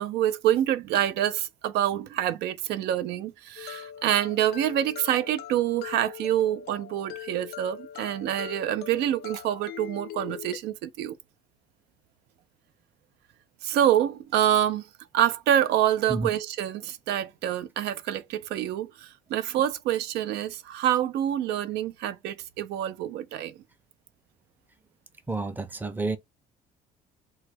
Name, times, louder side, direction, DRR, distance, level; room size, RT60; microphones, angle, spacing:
voice 1, 0.0-11.2 13.6-14.8 15.1-23.5, right 11 dB, 80° right, 0.4 m, -26 dB
sound 1, 3.6-10.6, left 12 dB, 70° left, 0.5 m, -41 dB
voice 2, 25.3-26.2, right 3 dB, 10° right, 0.5 m, -30 dB
3.1 x 2.2 x 3.2 m
cardioid pair, 110°, 17 cm